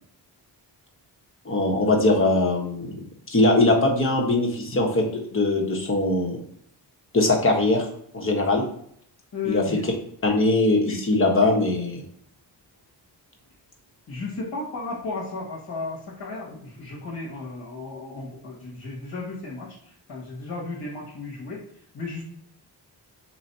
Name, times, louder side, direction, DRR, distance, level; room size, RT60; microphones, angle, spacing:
voice 1, 1.4-3.0 3.3-6.4 7.1-7.9 8.1-8.6 9.5-9.6 10.2-12.0, left 2 dB, 30° left, 1 dB, 1.2 m, -21 dB
voice 2, 9.3-9.8 10.9-11.0 14.1-21.7 21.9-22.2, left 3 dB, 60° left, -4 dB, 1.5 m, -34 dB
3.9 x 3.1 x 4.1 m, 0.67 s
cardioid pair, 80°, 41 cm